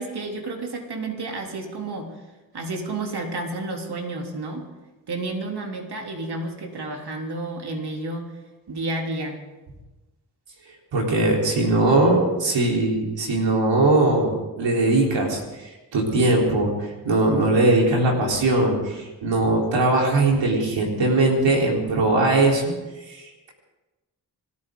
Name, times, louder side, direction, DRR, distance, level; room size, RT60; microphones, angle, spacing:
voice 1, 0.0-2.1 2.5-4.7 5.1-8.3 8.7-9.4, right 2 dB, 65° right, 1 dB, 3.2 m, -31 dB
voice 2, 10.9-22.6 23.0-23.5, right 2 dB, 85° right, -1 dB, 4.1 m, -20 dB
26.5 x 14.0 x 3.9 m, 1.1 s
supercardioid pair, 40°, 43 cm